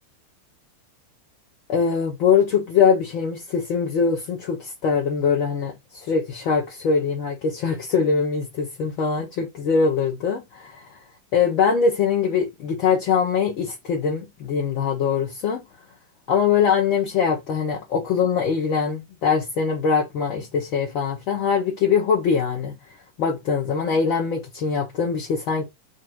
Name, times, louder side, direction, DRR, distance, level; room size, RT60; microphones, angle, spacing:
voice 1, 1.7-10.8 11.3-15.6 16.3-22.7 23.2-25.7, left 6 dB, 45° left, 0.7 m, -22 dB
2.6 x 2.0 x 3.9 m
figure-of-eight pair, 90°, 0 cm